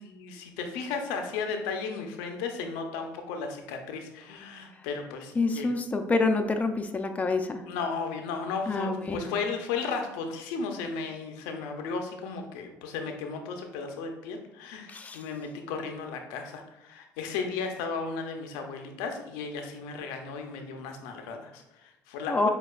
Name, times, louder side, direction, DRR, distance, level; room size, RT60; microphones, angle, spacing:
voice 1, 0.0-5.7 7.6-22.5, left 5 dB, 90° left, 4 dB, 0.5 m, -35 dB
voice 2, 5.4-7.6 8.7-9.4 14.9-15.2 22.3-22.5, left 3 dB, 20° left, 6 dB, 0.4 m, -27 dB
6.4 x 2.3 x 2.3 m, 0.90 s
supercardioid pair, 95°, 7 cm